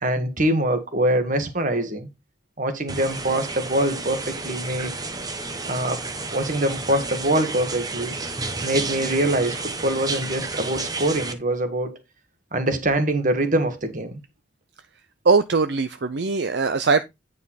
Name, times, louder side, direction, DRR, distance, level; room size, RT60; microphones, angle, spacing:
voice 1, 0.0-2.1 2.6-4.9 5.7-6.0 6.3-8.2 8.6-12.0 12.5-14.2, right 1 dB, 45° right, 1.7 m, -24 dB
sound 1, 2.9-11.3, right 3 dB, 20° right, 1.0 m, -31 dB
voice 2, 15.2-17.0, right 4 dB, 65° right, 0.6 m, -20 dB
9.3 x 5.3 x 4.2 m
head